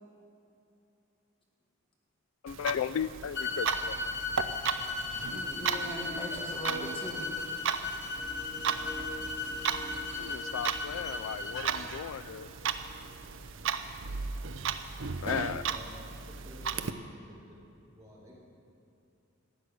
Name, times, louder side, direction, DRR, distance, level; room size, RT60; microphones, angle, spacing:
voice 1, 2.4-4.1 10.2-12.5 15.2-15.7, left 8 dB, 75° left, 17 dB, 0.3 m, -35 dB
Clock, 2.5-16.9, right 6 dB, 65° right, 0.6 m, -36 dB
sound 1, 3.3-11.7, left 3 dB, 55° left, 1.2 m, -36 dB
voice 2, 5.3-7.3, left 1 dB, 25° left, -1 dB, 1.7 m, -39 dB
sound 2, 8.2-13.5, left 1 dB, 10° left, 2.3 m, -47 dB
voice 3, 15.6-16.9 17.2-17.6 17.9-18.3, left 1 dB, 15° right, -5 dB, 3.6 m, -52 dB
15.0 x 6.4 x 9.8 m, 2.7 s
head